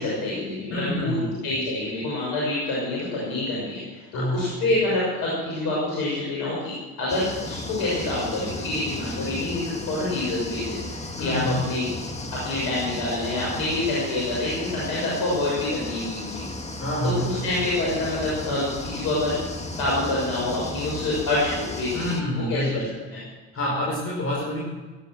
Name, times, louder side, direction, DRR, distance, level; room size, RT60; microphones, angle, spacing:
voice 1, 0.0-1.2 1.4-6.7 7.0-11.9 12.4-16.5 17.0-19.3 19.8-22.8 23.1-23.2, left 2 dB, 70° left, -5 dB, 6.5 m, -27 dB
voice 2, 0.7-1.3 4.1-4.5 11.2-11.7 16.8-17.5 21.9-22.9 23.5-24.6, equal, 40° left, -3 dB, 5.3 m, -27 dB
sound 1, 7.1-22.2, left 2 dB, 20° left, 2.2 m, -35 dB
17.5 x 11.0 x 6.3 m, 1.3 s
hypercardioid pair, 65°, 37 cm